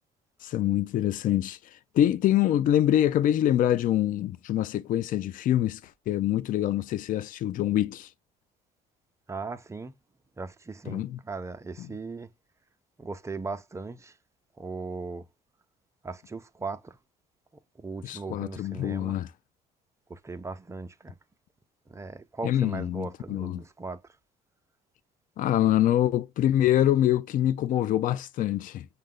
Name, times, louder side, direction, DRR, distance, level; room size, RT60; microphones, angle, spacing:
voice 1, 0.4-1.6 1.9-5.8 6.1-8.1 10.9-11.2 11.8-11.9 18.0-19.3 22.4-23.6 25.4-28.9, left 12 dB, 55° left, 0.4 m, -25 dB
voice 2, 9.3-9.9 10.4-12.3 13.0-14.2 14.6-15.3 16.0-17.0 17.8-19.2 20.1-21.2 21.9-24.0, right 3 dB, 15° right, 0.6 m, -38 dB
6.4 x 2.2 x 3.7 m
cardioid pair, 110°, 17 cm